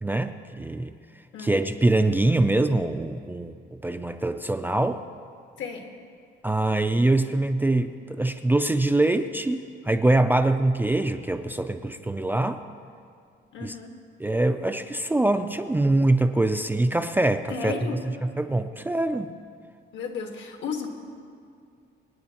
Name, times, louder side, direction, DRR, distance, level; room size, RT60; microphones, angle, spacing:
voice 1, 0.0-0.9 1.4-5.0 6.4-12.6 13.6-13.8 14.2-19.3, right 2 dB, 10° right, 7 dB, 0.3 m, -24 dB
voice 2, 13.5-13.9 17.5-18.0 19.9-20.9, left 5 dB, 70° left, 3 dB, 1.5 m, -33 dB
25.5 x 9.3 x 2.9 m, 2.3 s
cardioid pair, 150°, 20 cm